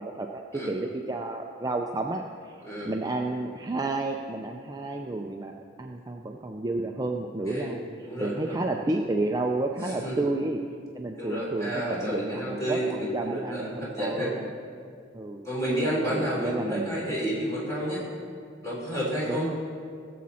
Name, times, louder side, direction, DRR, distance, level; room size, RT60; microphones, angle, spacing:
voice 1, 0.0-5.5 5.8-7.8 8.2-10.6 11.0-14.5 15.1-15.4 16.0-17.0 19.3-19.6, right 2 dB, 20° right, 2 dB, 0.4 m, -31 dB
voice 2, 2.6-3.0 7.4-7.8 8.0-8.6 9.8-10.2 11.1-14.3 15.4-18.0 18.6-19.5, equal, 15° left, -6 dB, 3.5 m, -30 dB
18.0 x 7.4 x 4.2 m, 2.3 s
head